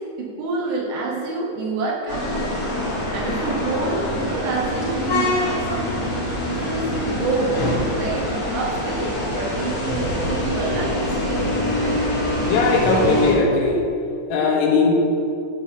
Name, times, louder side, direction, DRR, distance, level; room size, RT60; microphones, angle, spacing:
voice 1, 0.2-2.6 3.1-6.1 6.5-7.6 7.9-11.5 11.8-12.1, right 3 dB, 65° right, -4 dB, 3.5 m, -27 dB
sound 1, 2.1-13.3, left 1 dB, 25° left, 1.7 m, -24 dB
voice 2, 12.5-13.8 14.3-14.9, left 4 dB, 80° left, 0 dB, 4.0 m, -19 dB
12.0 x 5.5 x 7.3 m, 2.6 s
omnidirectional pair, 5.9 m